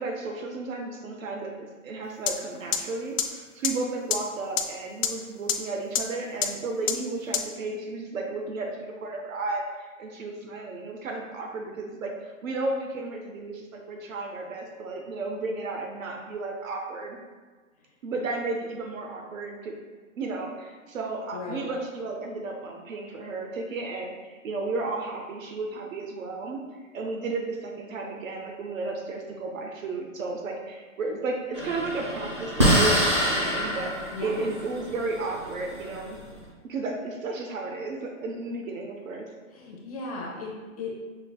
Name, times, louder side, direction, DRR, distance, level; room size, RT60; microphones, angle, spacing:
voice 1, 0.0-17.2 18.0-19.7 20.2-36.2 36.6-39.3, right 3 dB, 75° right, 1 dB, 0.8 m, -33 dB
sound 1, 2.3-2.4 2.7-2.8 3.2-3.3 3.6-3.7 4.1-4.2 4.6-4.7 5.0-5.1 5.5-5.6 6.0-6.1 6.4-6.5 6.9-7.0 7.3-7.4, left 9 dB, 70° left, 0.6 m, -23 dB
voice 2, 21.3-21.6 34.1-34.5 39.5-41.1, left 3 dB, 30° left, -2 dB, 0.6 m, -36 dB
sound 2, 31.5-36.2, equal, 25° right, 0.4 m, -26 dB
5.6 x 3.3 x 2.2 m, 1.4 s
hypercardioid pair, 165°, 40 cm